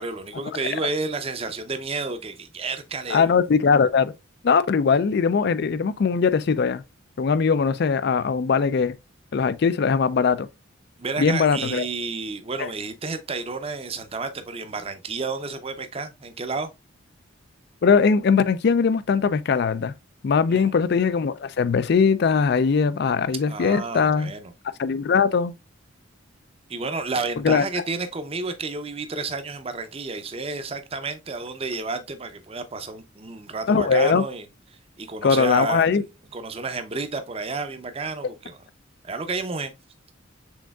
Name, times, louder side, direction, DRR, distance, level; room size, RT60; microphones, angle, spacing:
voice 1, 0.0-3.3 11.0-16.7 20.5-20.8 23.5-24.5 26.7-34.5 35.0-36.0 36.3-38.6 39.0-39.7, right 3 dB, 30° right, 0.5 m, -31 dB
voice 2, 3.1-4.1 4.4-6.8 7.2-9.0 9.3-10.5 11.2-11.9 12.6-12.7 17.8-19.9 20.2-24.3 24.8-25.5 27.4-27.7 33.7-34.2 35.2-36.0, left 5 dB, 50° left, 0.3 m, -20 dB
6.3 x 3.7 x 2.3 m
head